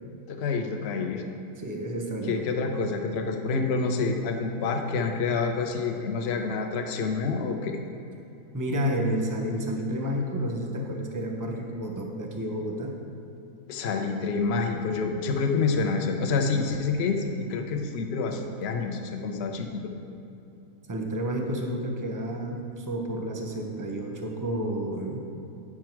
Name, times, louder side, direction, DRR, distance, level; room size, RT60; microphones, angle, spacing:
voice 1, 0.3-1.2 2.3-7.8 13.7-19.9, left 4 dB, 55° left, 4 dB, 0.9 m, -28 dB
voice 2, 1.6-3.0 8.5-12.9 20.9-25.2, equal, 20° right, 2 dB, 0.6 m, -30 dB
9.4 x 6.0 x 4.5 m, 2.8 s
omnidirectional pair, 1.6 m